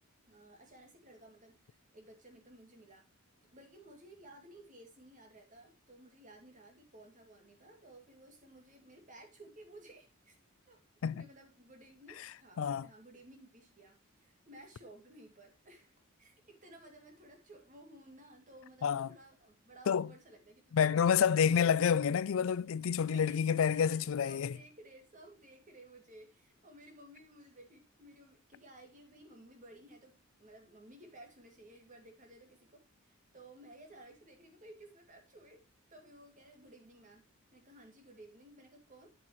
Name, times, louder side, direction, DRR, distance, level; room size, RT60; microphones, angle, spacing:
voice 1, 0.3-3.0 3.5-10.3 10.7-10.8 11.1-21.7 23.1-35.6 35.9-37.2 37.5-39.1, right 1 dB, 35° right, 2.3 m, -56 dB
voice 2, 12.6-12.9 18.8-19.1 19.9-20.1 20.7-24.5, left 7 dB, 65° left, 0.3 m, -28 dB
8.1 x 7.4 x 3.0 m
head